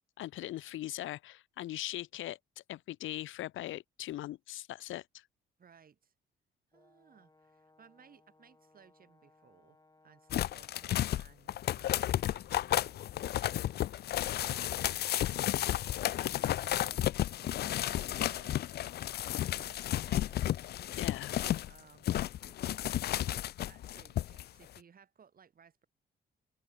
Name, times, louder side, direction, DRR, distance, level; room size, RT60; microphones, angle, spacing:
voice 1, 0.2-2.4 2.7-5.2 16.2-16.5 20.9-21.3, left 14 dB, 80° left, 1.3 m, -40 dB
voice 2, 5.6-6.1 6.7-17.1 18.2-25.9, right 7 dB, 45° right, 4.7 m, -62 dB
Brass instrument, 6.7-11.1, left 2 dB, 20° left, 7.7 m, -67 dB
sound 1, 10.3-21.7 22.0-24.4 24.8-24.9, left 13 dB, 55° left, 0.4 m, -32 dB
cardioid pair, 90°, 20 cm